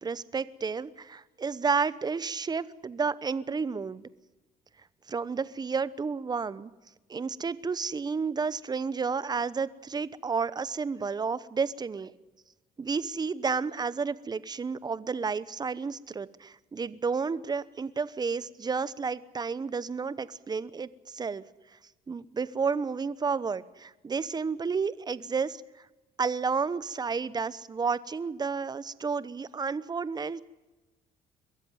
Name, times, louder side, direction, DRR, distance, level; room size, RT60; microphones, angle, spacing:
voice 1, 0.0-4.0 5.1-6.7 7.1-12.1 12.8-21.4 22.1-25.6 26.2-30.5, right 5 dB, 25° right, 18 dB, 0.9 m, -31 dB
22.5 x 14.5 x 9.3 m, 1.1 s
cardioid pair, 110°, 17 cm